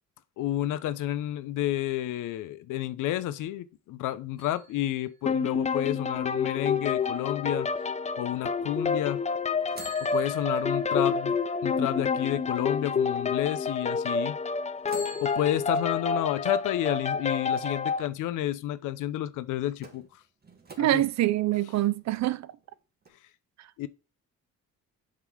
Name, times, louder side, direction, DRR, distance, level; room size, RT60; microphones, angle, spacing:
voice 1, 0.4-7.7 8.2-9.2 10.0-14.4 15.2-20.2 20.8-21.0 23.8-23.9, left 13 dB, 85° left, 0.7 m, -30 dB
sound 1, 4.4-6.2 9.8-12.9 13.4-13.5 14.8-16.6 19.8-21.2 21.8-22.7 23.0-23.1, right 2 dB, 30° right, 1.8 m, -48 dB
sound 2, 5.3-18.1, left 5 dB, 25° left, 0.5 m, -29 dB
voice 2, 20.8-22.5 23.6-23.7, right 14 dB, 65° right, 0.5 m, -25 dB
7.5 x 3.7 x 4.6 m
cardioid pair, 90°, 30 cm